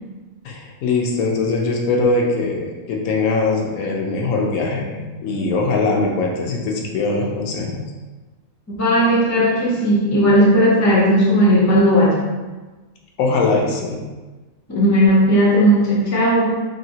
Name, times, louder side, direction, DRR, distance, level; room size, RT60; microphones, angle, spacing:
voice 1, 0.4-7.8 13.2-14.0, left 3 dB, 80° left, 0 dB, 1.0 m, -21 dB
voice 2, 8.8-12.3 14.7-16.6, equal, 25° left, -6 dB, 0.4 m, -15 dB
2.9 x 2.7 x 2.7 m, 1.3 s
omnidirectional pair, 1.5 m